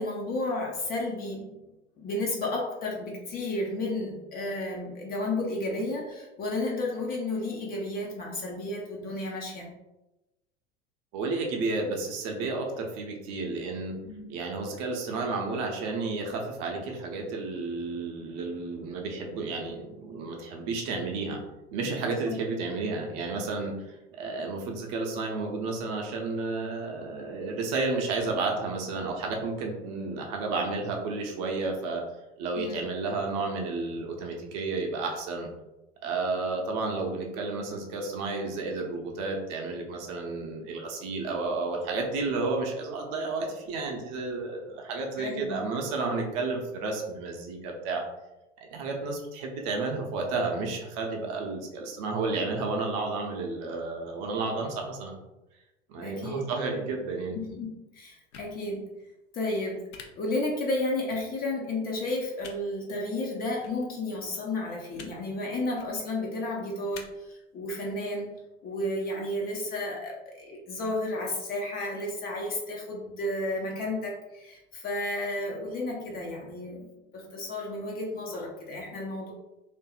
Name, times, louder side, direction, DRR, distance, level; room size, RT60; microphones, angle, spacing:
voice 1, 0.0-1.5 2.0-9.7 14.0-14.3 22.0-22.3 32.6-32.8 45.2-45.6 56.0-56.4 57.3-57.7 57.9-58.8 59.3-59.8 60.2-68.3 68.6-79.3, left 2 dB, 25° left, -1 dB, 0.5 m, -32 dB
voice 2, 11.1-13.9 14.3-21.4 21.7-32.0 32.4-35.5 36.0-48.0 48.6-55.2 55.9-57.4, right 3 dB, 40° right, 1 dB, 0.6 m, -32 dB
sound 1, 58.3-58.5 59.9-60.0 61.1-61.2 62.4-62.5 63.6-63.7 64.9-65.1 65.7-65.9 66.9-67.0, left 6 dB, 75° left, 0.5 m, -45 dB
2.6 x 2.5 x 2.3 m, 0.99 s
figure-of-eight pair, 75°, 36 cm